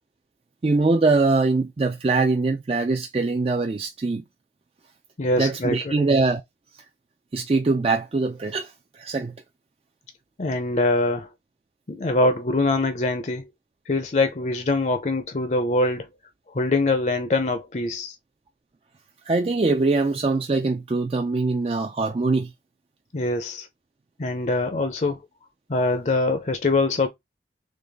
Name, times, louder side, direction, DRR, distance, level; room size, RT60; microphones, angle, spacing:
voice 1, 0.6-4.2 5.4-6.4 7.3-8.7 9.0-9.3 19.3-22.5, right 3 dB, 35° right, 0.4 m, -22 dB
voice 2, 5.2-6.1 10.4-11.3 11.9-13.5 13.9-16.1 16.5-18.2 23.1-23.7 24.2-25.2 25.7-27.1, left 2 dB, 40° left, 0.6 m, -23 dB
3.9 x 3.1 x 3.4 m
head